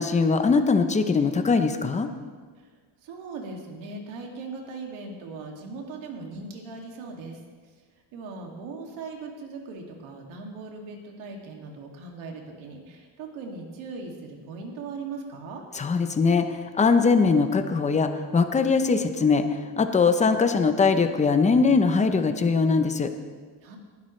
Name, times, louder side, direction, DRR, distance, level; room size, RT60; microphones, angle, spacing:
voice 1, 0.0-2.1 15.7-19.4 19.8-23.1, left 4 dB, 15° left, 8 dB, 0.7 m, -21 dB
voice 2, 3.0-7.4 8.1-15.6 23.6-23.8, right 3 dB, 70° right, 1 dB, 2.5 m, -39 dB
19.5 x 11.5 x 3.2 m, 1.5 s
cardioid pair, 145°, 47 cm